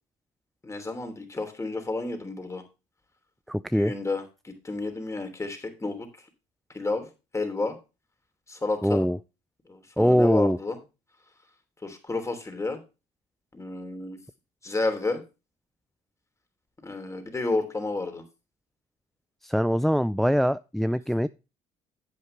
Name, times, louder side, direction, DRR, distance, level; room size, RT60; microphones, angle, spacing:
voice 1, 0.6-2.6 3.7-6.1 6.7-7.1 7.3-7.7 8.5-9.1 9.7-10.8 11.8-12.8 13.5-14.2 14.6-15.2 16.8-18.2, left 3 dB, 20° left, 6 dB, 3.1 m, -31 dB
voice 2, 3.5-3.9 8.8-9.2 10.0-10.6 19.4-21.3, equal, ahead, 15 dB, 0.4 m, -23 dB
11.0 x 7.9 x 3.3 m, 0.29 s
supercardioid pair, 75°, 14 cm